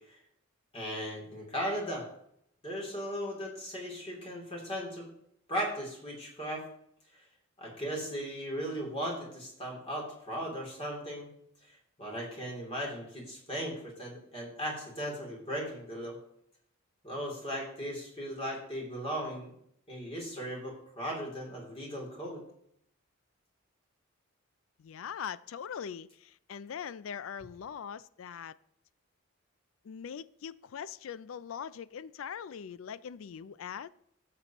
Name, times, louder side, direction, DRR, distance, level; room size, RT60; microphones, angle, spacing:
voice 1, 0.7-2.1 2.6-5.1 5.5-6.6 7.6-11.3 12.0-16.1 17.0-19.5 19.9-22.4, equal, 30° left, 2.9 m, -37 dB
voice 2, 24.8-28.5 29.8-33.9, left 7 dB, 85° left, 0.4 m, -41 dB
16.0 x 6.7 x 3.0 m
head